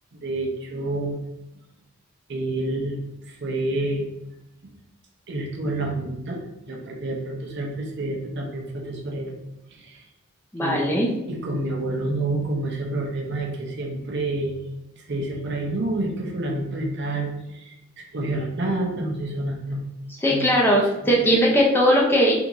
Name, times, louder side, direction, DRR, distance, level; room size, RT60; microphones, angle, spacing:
voice 1, 0.1-1.2 2.3-3.0 3.3-4.1 5.3-6.4 6.7-9.3 9.7-10.1 10.6-10.8 11.3-14.6 14.9-19.8 20.2-21.4, right 2 dB, 55° right, -1 dB, 0.7 m, -29 dB
voice 2, 10.5-11.1 20.2-22.4, equal, 10° left, -3 dB, 0.5 m, -19 dB
3.6 x 2.5 x 2.9 m, 0.95 s
head